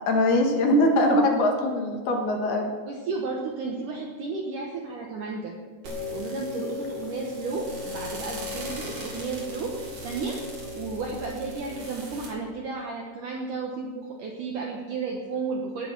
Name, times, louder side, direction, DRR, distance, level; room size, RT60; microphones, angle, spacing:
voice 1, 0.1-2.7, left 1 dB, 65° left, 2 dB, 3.3 m, -22 dB
voice 2, 2.9-5.6 6.1-15.9, right 4 dB, 70° right, 0 dB, 2.0 m, -33 dB
sound 1, 5.8-12.3, left 2 dB, 45° right, 4.5 m, -36 dB
19.0 x 8.0 x 6.2 m, 1.5 s
omnidirectional pair, 5.2 m